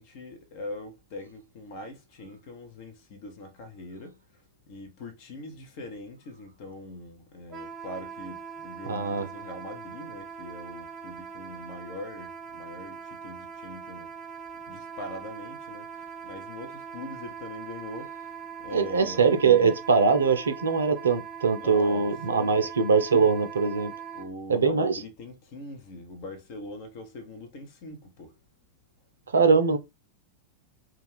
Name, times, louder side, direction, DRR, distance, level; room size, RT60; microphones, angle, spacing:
voice 1, 0.0-4.2 4.7-14.1 14.7-19.3 21.5-22.7 24.1-28.3, left 2 dB, 45° left, 0.7 m, -42 dB
Wind instrument woodwind instrument, 7.5-24.3, right 7 dB, 25° right, 0.6 m, -41 dB
voice 2, 8.9-9.3 18.7-23.9 24.5-25.0 29.3-29.8, right 5 dB, 70° right, 0.4 m, -22 dB
2.3 x 2.3 x 3.2 m
figure-of-eight pair, 90°, 0 cm